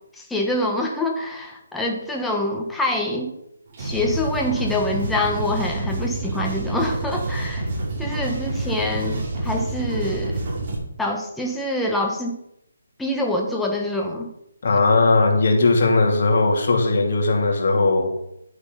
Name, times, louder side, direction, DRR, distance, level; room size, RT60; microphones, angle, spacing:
voice 1, 0.1-3.3 3.8-7.7 8.0-10.4 11.0-12.4 13.0-14.3, left 1 dB, 5° left, 1 dB, 1.5 m, -25 dB
sound 1, 3.7-10.7, right 2 dB, 40° right, 5.7 m, -27 dB
voice 2, 14.6-18.1, left 3 dB, 55° left, 1 dB, 2.9 m, -18 dB
12.0 x 8.1 x 5.4 m, 0.79 s
hypercardioid pair, 155°, 0 cm